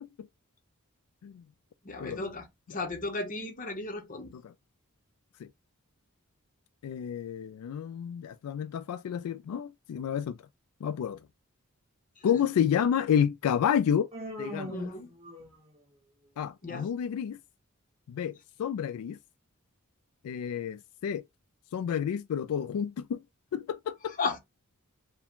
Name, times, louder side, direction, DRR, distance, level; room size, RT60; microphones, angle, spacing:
voice 1, 1.8-4.4 12.2-12.4 14.7-15.1 16.6-16.9 24.2-24.4, left 3 dB, 35° left, 0.8 m, -35 dB
voice 2, 6.8-10.4 10.8-11.2 12.2-14.1 14.4-14.9 16.4-17.4 18.1-19.2 20.2-21.2 21.7-23.2 23.5-24.2, left 8 dB, 80° left, 0.3 m, -30 dB
Human voice, 14.1-15.8, equal, 30° right, 2.0 m, -41 dB
4.6 x 2.2 x 3.6 m
head